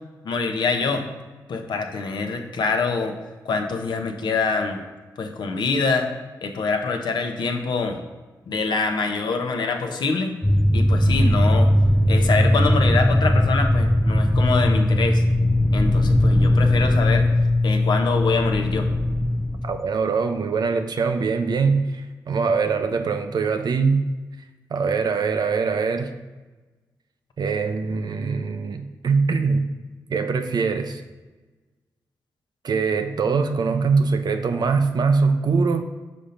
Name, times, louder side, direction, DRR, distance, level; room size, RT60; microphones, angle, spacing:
voice 1, 0.2-1.0 1.5-3.1 3.4-4.8 5.2-6.1 6.4-8.0 8.5-10.4 10.7-11.7 12.1-15.2 15.7-17.3 17.6-18.9, left 4 dB, 70° left, 4 dB, 0.7 m, -25 dB
sound 1, 10.4-19.8, left 1 dB, 5° left, 0.4 m, -19 dB
voice 2, 19.6-24.1 24.7-26.1 27.4-29.7 30.1-31.0 32.6-35.8, right 4 dB, 60° right, 8 dB, 0.6 m, -22 dB
5.2 x 4.3 x 5.2 m, 1.2 s
supercardioid pair, 40°, 8 cm